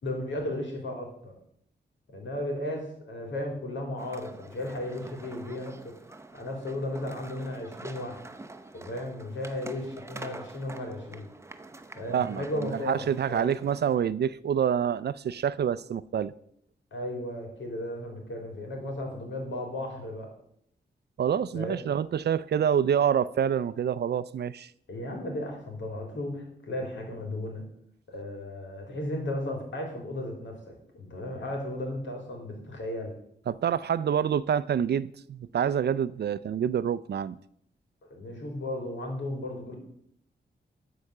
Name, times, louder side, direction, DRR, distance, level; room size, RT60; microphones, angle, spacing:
voice 1, 0.0-1.4 2.1-5.9 6.3-8.2 8.7-11.3 11.9-13.6 16.9-20.3 21.5-21.8 24.9-27.6 28.1-33.1 38.1-39.7, left 1 dB, 85° left, 3.3 m, -35 dB
sound 1, 4.0-14.0, right 2 dB, 15° right, 0.7 m, -46 dB
voice 2, 12.1-16.3 21.2-24.7 33.5-37.4, right 8 dB, 60° right, 0.4 m, -27 dB
13.0 x 4.8 x 6.6 m
wide cardioid pair, 100°, 19 cm